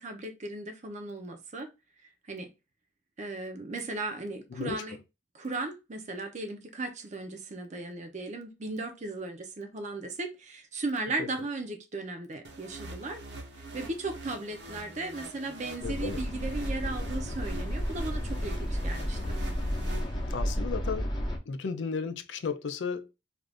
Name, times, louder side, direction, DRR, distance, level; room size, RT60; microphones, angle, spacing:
voice 1, 0.0-1.7 2.3-2.5 3.2-5.0 5.3-13.2 13.6-19.4, right 2 dB, 40° right, 0.6 m, -36 dB
voice 2, 4.5-4.8 11.2-11.3 15.8-16.2 20.3-21.1 21.5-23.1, left 5 dB, 75° left, 0.4 m, -34 dB
sound 1, 12.4-20.6, right 2 dB, 65° right, 1.0 m, -45 dB
sound 2, 15.8-21.4, equal, 25° left, 0.7 m, -32 dB
2.5 x 2.4 x 3.3 m
head